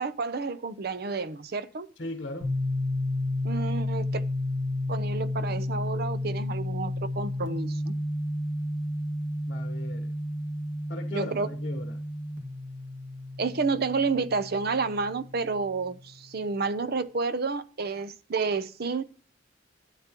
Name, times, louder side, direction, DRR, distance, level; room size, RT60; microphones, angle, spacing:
voice 1, 0.0-1.9 3.4-4.2 4.9-7.9 11.1-11.5 13.4-19.0, right 4 dB, 50° right, 0.7 m, -30 dB
voice 2, 2.0-2.5 9.5-10.1 10.9-11.9, left 2 dB, 50° left, 1.0 m, -37 dB
sound 1, 2.4-16.0, left 1 dB, 70° right, 2.3 m, -32 dB
13.0 x 8.4 x 3.0 m
head